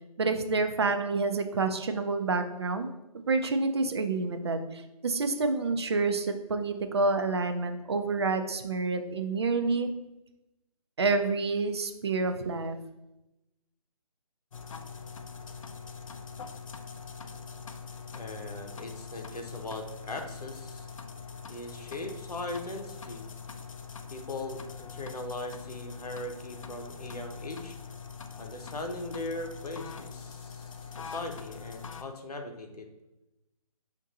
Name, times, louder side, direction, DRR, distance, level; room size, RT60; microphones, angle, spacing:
voice 1, 0.2-2.9 3.3-9.9 11.0-12.8, right 3 dB, 45° right, 8 dB, 0.4 m, -28 dB
sound 1, 14.5-32.0, left 6 dB, 60° left, 0.4 m, -43 dB
voice 2, 18.1-20.9 21.5-23.3 24.1-27.7 28.4-32.9, left 2 dB, 80° left, 4 dB, 0.8 m, -39 dB
5.1 x 2.5 x 2.8 m, 0.94 s
figure-of-eight pair, 155°, 20 cm